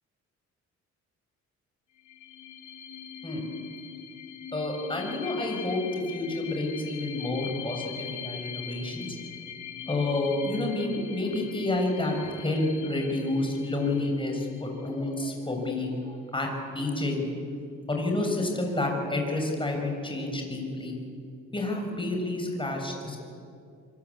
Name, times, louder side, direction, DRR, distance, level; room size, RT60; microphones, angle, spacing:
sound 1, 2.0-15.4, left 8 dB, 80° left, 2.7 m, -42 dB
voice 1, 4.5-9.1 9.9-17.3 17.9-21.0 21.5-23.2, left 2 dB, 15° left, 2 dB, 6.8 m, -29 dB
26.0 x 23.0 x 8.5 m, 2.4 s
cardioid pair, 90°, 30 cm